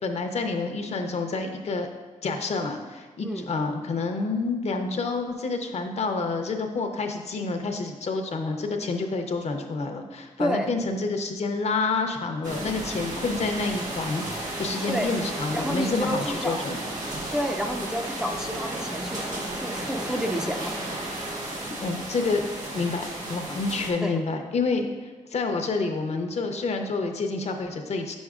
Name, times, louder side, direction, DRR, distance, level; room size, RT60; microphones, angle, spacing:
voice 1, 0.0-1.9 2.2-16.8 21.8-22.4 22.7-28.2, left 3 dB, 55° left, 5 dB, 0.7 m, -28 dB
sound 1, 12.4-23.9, right 1 dB, 85° right, 1.7 m, -33 dB
voice 2, 15.5-16.6 17.3-20.8 24.0-24.2, equal, 5° right, 3 dB, 0.4 m, -30 dB
8.4 x 6.2 x 2.4 m, 1.3 s
wide cardioid pair, 120°, 13 cm